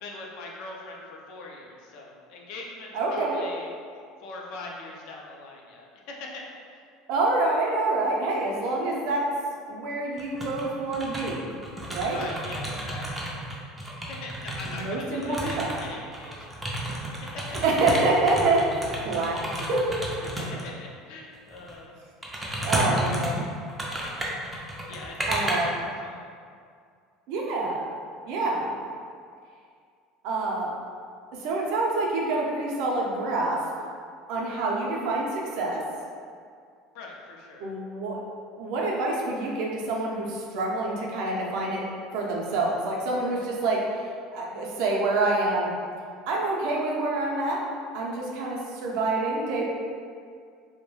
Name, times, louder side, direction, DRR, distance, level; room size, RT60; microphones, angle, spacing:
voice 1, 0.0-3.7 4.2-6.4 6.7-6.8 12.1-13.4 13.9-16.7 17.3-17.6 20.2-22.0 24.9-25.7 26.0-26.2 36.9-37.7, left 3 dB, 65° left, -1 dB, 0.4 m, -41 dB
voice 2, 2.9-3.4 7.1-9.3 9.7-11.5 11.9-12.2 14.7-15.7 17.6-19.4 19.7-19.9 22.6-23.4 25.3-25.8 27.3-27.8 28.2-28.8 30.2-30.7 31.4-33.6 34.3-35.8 37.6-38.2 38.6-44.1 44.3-45.7 46.3-47.6 47.9-49.6, right 2 dB, 65° right, -2 dB, 0.5 m, -27 dB
sound 1, 10.2-10.6 10.9-14.8 15.2-20.7 21.5-21.7 22.2-25.5, right 1 dB, 10° right, 0.4 m, -32 dB
2.2 x 2.1 x 3.0 m, 2.2 s
cardioid pair, 145°, 0 cm